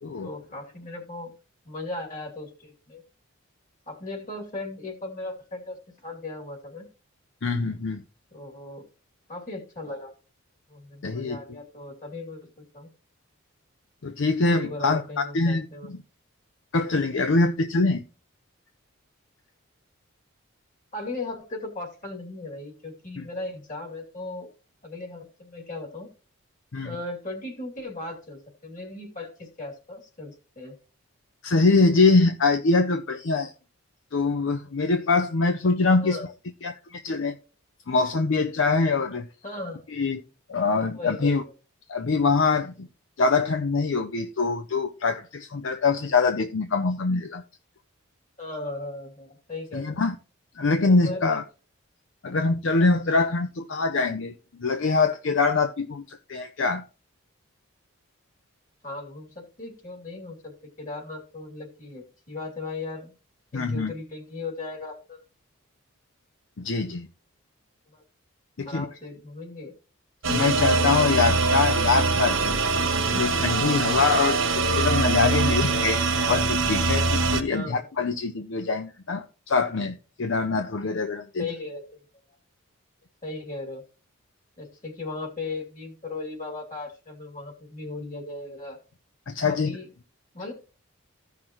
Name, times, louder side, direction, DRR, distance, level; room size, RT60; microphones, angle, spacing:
voice 1, 0.2-1.3 1.6-3.0 3.9-6.9 8.3-8.8 9.3-10.1 10.7-12.9 14.5-15.9 20.9-24.5 24.8-26.1 26.8-30.7 36.0-36.3 39.4-39.8 40.9-41.4 48.4-50.0 50.8-51.4 58.8-63.1 63.5-65.2 67.9-68.0 68.7-69.7 77.5-77.8 80.8-81.0 81.4-81.8 83.2-83.8 84.6-88.8 89.5-89.9 90.3-90.5, left 2 dB, 35° left, 2.6 m, -37 dB
voice 2, 7.4-8.0 11.0-11.4 14.0-16.0 16.7-18.0 23.2-23.3 26.7-26.9 31.4-33.5 34.1-36.2 36.6-37.3 37.9-39.3 39.9-40.2 40.5-41.4 41.9-42.9 43.2-47.4 49.7-50.2 50.6-51.4 52.2-54.3 54.6-56.8 63.5-63.9 66.6-67.1 68.6-68.8 70.3-72.6 73.1-81.4 89.3-89.8, left 3 dB, 65° left, 0.6 m, -24 dB
sound 1, 70.2-77.4, right 3 dB, 70° right, 1.3 m, -23 dB
15.0 x 5.8 x 3.0 m
head